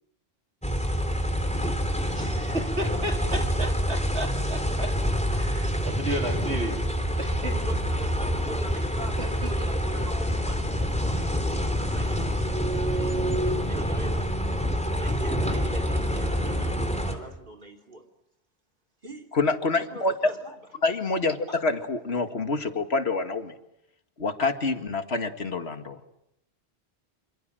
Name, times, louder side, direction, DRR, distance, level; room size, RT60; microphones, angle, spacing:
sound 1, 0.6-17.2, equal, 5° left, 3.4 m, -27 dB
voice 1, 2.1-4.9 5.3-6.9 7.2-7.6 9.2-9.7, right 1 dB, 75° right, 3 dB, 4.7 m, -33 dB
voice 2, 7.6-9.2 9.4-12.3 12.9-14.3 14.9-18.0 19.0-19.2 19.9-20.4 21.5-21.6, right 2 dB, 50° right, 4 dB, 3.6 m, -42 dB
voice 3, 19.3-20.1 20.8-21.4 21.6-23.5 24.2-26.0, left 3 dB, 70° left, 8 dB, 2.2 m, -27 dB
27.5 x 26.5 x 7.8 m, 0.80 s
omnidirectional pair, 1.1 m